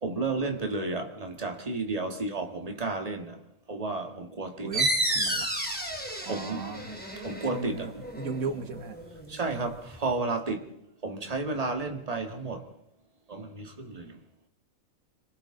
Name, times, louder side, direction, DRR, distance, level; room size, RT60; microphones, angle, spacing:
voice 1, 0.0-3.4 3.7-4.8 6.2-6.6 7.2-7.9 9.3-10.7 11.0-12.7 13.3-14.2, right 3 dB, 25° right, 1.9 m, -32 dB
voice 2, 4.6-5.5 6.3-6.9 7.5-9.0, right 4 dB, 85° right, 1.8 m, -36 dB
sound 1, 4.7-10.0, right 1 dB, 5° left, 3.0 m, -32 dB
27.5 x 25.5 x 3.9 m
omnidirectional pair, 1.4 m